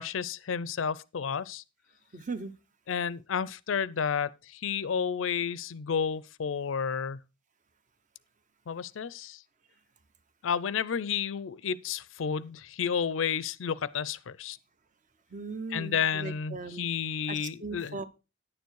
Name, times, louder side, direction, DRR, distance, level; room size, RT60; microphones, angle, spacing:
voice 1, 0.0-1.6 2.9-7.2 8.7-9.4 10.4-14.6 15.7-18.0, left 7 dB, 90° left, 0.5 m, -31 dB
voice 2, 2.1-2.5 15.3-16.9 17.3-18.0, right 3 dB, 40° right, 0.8 m, -38 dB
9.8 x 7.0 x 4.6 m
head